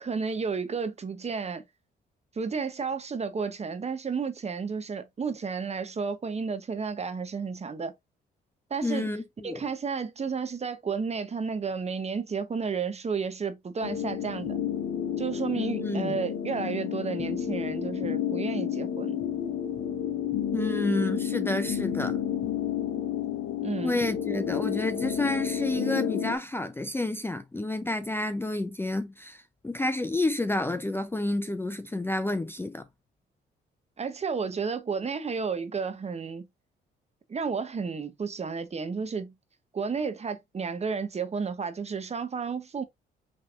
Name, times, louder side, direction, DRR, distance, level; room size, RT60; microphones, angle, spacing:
voice 1, 0.0-1.6 2.3-7.9 8.7-9.1 9.4-14.6 15.2-19.2 23.6-24.0 34.0-36.5 37.3-39.3 39.7-42.8, right 5 dB, 35° right, 1.0 m, -32 dB
voice 2, 8.8-9.6 15.8-16.2 20.5-22.2 23.8-32.9, left 2 dB, 10° left, 0.5 m, -30 dB
sound 1, 13.8-26.4, left 9 dB, 75° left, 0.9 m, -31 dB
5.9 x 3.4 x 2.5 m
cardioid pair, 90°, 20 cm